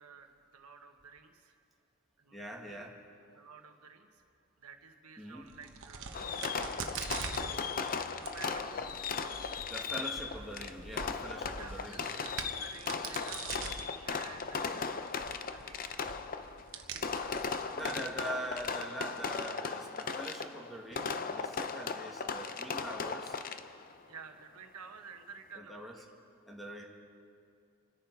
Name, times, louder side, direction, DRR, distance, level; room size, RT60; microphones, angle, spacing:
voice 1, 0.0-1.6 2.2-2.9 3.3-4.2 4.6-6.5 7.3-8.9 10.0-10.1 11.5-17.8 24.1-26.1, right 5 dB, 90° right, 5 dB, 1.2 m, -53 dB
voice 2, 2.3-2.9 5.2-5.5 9.7-12.0 17.7-23.4 25.5-25.9 26.5-26.8, right 1 dB, ahead, -1 dB, 1.7 m, -43 dB
Crack, 5.4-18.7, right 5 dB, 60° right, 1.0 m, -45 dB
Fireworks, 6.1-23.9, left 5 dB, 40° left, 0.6 m, -37 dB
27.0 x 10.5 x 4.6 m, 2.4 s
head